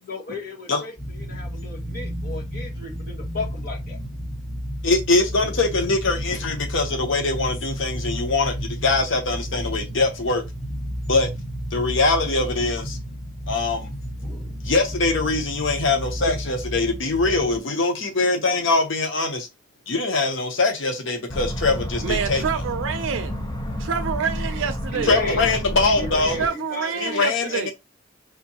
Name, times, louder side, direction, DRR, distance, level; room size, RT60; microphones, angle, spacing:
voice 1, 0.1-4.0 24.9-25.4 25.9-27.7, left 2 dB, 50° left, 1.7 m, -34 dB
sound 1, 1.0-17.6, equal, ahead, 1.5 m, -32 dB
voice 2, 4.8-10.4 11.1-11.3 11.7-13.0 13.5-13.9 14.6-19.5 19.9-22.4 25.0-26.5 27.0-27.7, left 3 dB, 65° left, 0.8 m, -22 dB
sound 2, 21.3-26.5, equal, 20° left, 0.7 m, -30 dB
voice 3, 22.0-23.4 23.8-25.1 26.4-27.7, right 6 dB, 70° right, 0.4 m, -27 dB
5.0 x 2.6 x 2.8 m
head